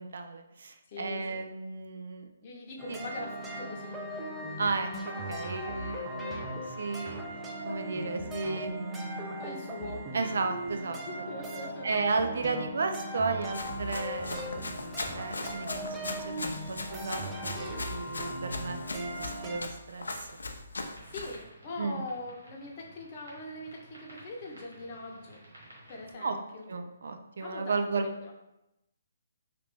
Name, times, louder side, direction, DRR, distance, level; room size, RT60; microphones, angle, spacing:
voice 1, 0.0-2.3 2.9-3.0 4.6-7.2 7.7-9.4 10.1-11.0 11.8-20.3 21.8-22.0 26.2-26.4 26.7-28.1, right 4 dB, 65° right, 6 dB, 0.4 m, -34 dB
voice 2, 0.9-1.4 2.4-4.0 9.4-10.1 10.7-11.9 21.1-25.4 25.9-26.7 27.4-28.3, left 2 dB, 35° left, -1 dB, 0.8 m, -42 dB
sound 1, 2.8-19.6, equal, 10° right, 0.5 m, -38 dB
Run, 13.5-21.4, left 2 dB, 85° left, 0.4 m, -39 dB
sound 2, 20.9-26.1, right 1 dB, 85° right, 1.3 m, -54 dB
3.0 x 2.5 x 3.3 m, 0.91 s
hypercardioid pair, 140°, 0 cm